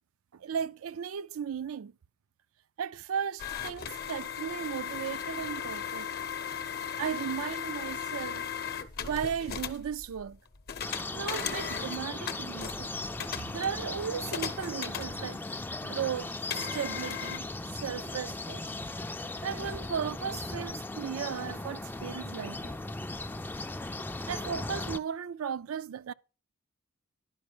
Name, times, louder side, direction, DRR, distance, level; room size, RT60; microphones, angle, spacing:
voice 1, 0.3-1.9 2.8-6.1 7.0-8.4 9.0-10.4 11.1-12.9 13.5-15.4 15.8-16.3 16.6-17.5 17.7-18.6 19.4-22.7 24.3-26.1, right 7 dB, 75° right, 0.4 m, -36 dB
sound 1, 3.4-15.7 16.5-17.4, left 7 dB, 50° left, 0.8 m, -37 dB
sound 2, 10.8-25.0, left 2 dB, 10° left, 0.3 m, -38 dB
11.0 x 5.2 x 4.9 m
head